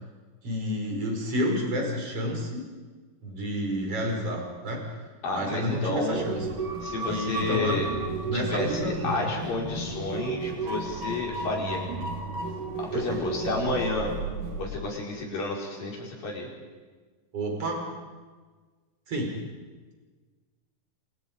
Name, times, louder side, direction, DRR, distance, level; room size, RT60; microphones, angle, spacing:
voice 1, 0.4-2.7 3.2-4.8 5.3-6.5 7.0-7.8 8.2-9.2 12.9-13.3 13.7-13.8 17.3-17.8 19.1-19.3, equal, 40° right, 1 dB, 6.1 m, -30 dB
voice 2, 5.2-6.2 6.8-7.9 8.3-11.8 12.8-14.1 14.6-16.5, left 3 dB, 70° left, -2 dB, 6.7 m, -31 dB
sound 1, 6.1-14.7, right 3 dB, 65° right, 4.6 m, -33 dB
29.0 x 26.0 x 5.3 m, 1.4 s
omnidirectional pair, 4.1 m